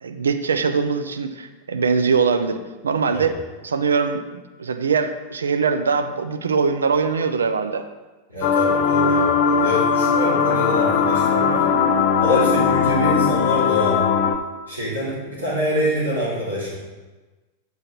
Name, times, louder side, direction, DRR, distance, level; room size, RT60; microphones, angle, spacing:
voice 1, 0.0-3.3 3.6-7.9, right 5 dB, 70° right, 9 dB, 0.5 m, -22 dB
voice 2, 8.3-11.6 12.2-14.1 14.7-16.7, equal, 85° right, -8 dB, 2.2 m, -25 dB
sound 1, 8.4-14.4, left 6 dB, 45° left, 0.5 m, -19 dB
7.6 x 7.0 x 3.1 m, 1.2 s
figure-of-eight pair, 90°, 0 cm